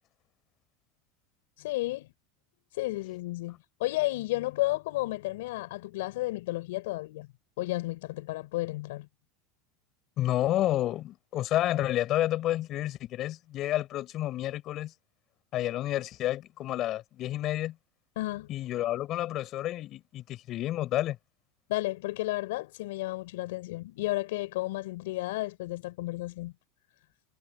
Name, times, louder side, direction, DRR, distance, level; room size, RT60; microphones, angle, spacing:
voice 1, 1.6-2.1 2.8-7.3 7.6-9.1 18.2-18.5 21.7-26.5, left 19 dB, 75° left, 6.3 m, -32 dB
voice 2, 10.2-14.9 15.5-17.8 18.5-21.2, left 14 dB, 35° left, 7.0 m, -30 dB
supercardioid pair, 170°, 0 cm